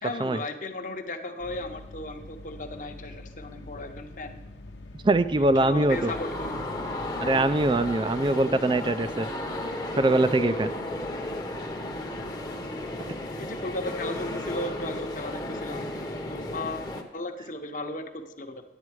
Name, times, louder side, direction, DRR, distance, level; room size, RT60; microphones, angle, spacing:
voice 1, 0.0-4.4 5.4-6.6 13.4-15.9 16.3-18.6, left 2 dB, 45° left, 5 dB, 0.9 m, -36 dB
sound 1, 1.4-8.0, left 2 dB, 85° left, 0.9 m, -45 dB
voice 2, 5.0-6.1 7.2-9.3 10.0-10.7, right 2 dB, 25° right, 13 dB, 0.4 m, -23 dB
sound 2, 5.9-17.0, left 1 dB, 20° left, 0.9 m, -34 dB
11.0 x 8.7 x 4.8 m, 1.0 s
head